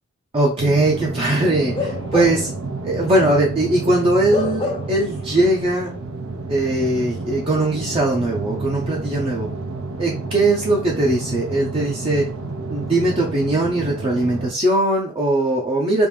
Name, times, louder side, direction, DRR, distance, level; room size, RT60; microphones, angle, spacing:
voice 1, 0.3-2.5 2.8-5.9 6.5-9.5 10.0-12.3 12.7-16.1, right 1 dB, 25° right, -3 dB, 0.6 m, -20 dB
sound 1, 0.6-14.5, right 3 dB, 70° right, 0.6 m, -30 dB
Bark / Livestock farm animals working animals, 1.7-2.6 3.0-3.2 4.3-5.1 5.4-5.6, left 4 dB, 25° left, 0.4 m, -27 dB
3.4 x 2.5 x 3.1 m, 0.36 s
head